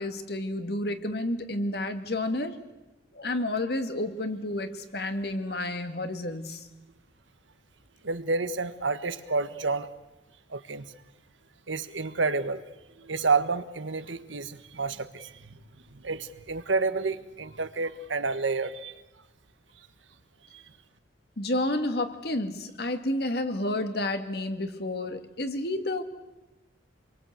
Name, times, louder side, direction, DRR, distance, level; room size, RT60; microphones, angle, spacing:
voice 1, 0.0-2.6 3.1-6.6 21.4-26.0, left 1 dB, 55° left, 7 dB, 2.1 m, -30 dB
voice 2, 8.0-9.9 10.5-10.9 11.7-12.6 13.0-15.5 15.9-19.0 20.5-20.6, right 4 dB, 90° right, 10 dB, 1.5 m, -29 dB
27.0 x 23.0 x 8.2 m, 1.0 s
head